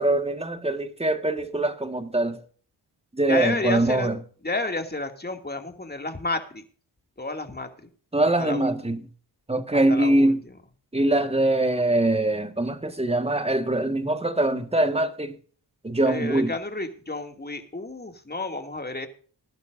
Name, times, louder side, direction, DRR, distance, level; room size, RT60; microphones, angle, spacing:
voice 1, 0.0-2.4 3.1-4.2 8.1-9.0 9.5-10.4 10.9-15.4 15.8-16.5, right 1 dB, 15° right, 1.7 m, -23 dB
voice 2, 3.3-4.1 4.4-6.6 7.2-7.9 8.4-8.7 9.7-10.3 16.1-19.1, left 2 dB, 20° left, 2.5 m, -31 dB
20.5 x 11.0 x 2.6 m
cardioid pair, 65°, 44 cm